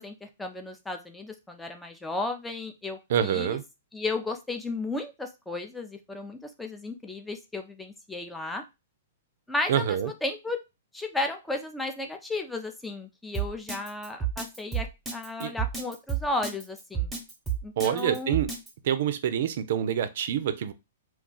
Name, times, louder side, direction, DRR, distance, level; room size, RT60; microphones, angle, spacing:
voice 1, 0.0-3.6 3.9-8.6 9.5-10.6 10.9-17.1 17.6-18.4, left 2 dB, 5° left, 5 dB, 0.5 m, -34 dB
voice 2, 3.1-3.6 9.7-10.1 15.4-15.5 17.8-18.5 18.8-20.7, right 9 dB, 60° right, 11 dB, 0.4 m, -26 dB
Drum kit, 13.3-18.7, right 8 dB, 10° right, 1.0 m, -30 dB
2.4 x 2.3 x 3.7 m, 0.25 s
hypercardioid pair, 130°, 0 cm